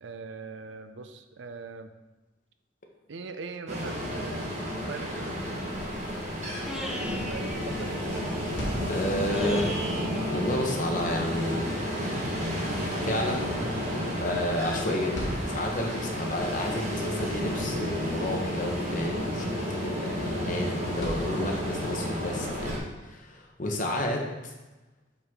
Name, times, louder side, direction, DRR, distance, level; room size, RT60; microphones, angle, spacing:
voice 1, 0.0-1.9 3.1-4.5 4.7-5.6 6.8-8.5, right 4 dB, 70° right, 9 dB, 0.5 m, -41 dB
Ocean, 3.7-22.8, equal, 35° right, 1.3 m, -31 dB
sound 1, 5.3-11.8, equal, 5° right, 0.7 m, -41 dB
voice 2, 8.9-9.8 10.3-11.7 13.0-13.5 13.9-24.5, left 1 dB, 40° left, 1 dB, 1.0 m, -31 dB
sound 2, 20.9-22.2, equal, 65° left, 1.4 m, -44 dB
6.1 x 5.5 x 3.7 m, 1.1 s
head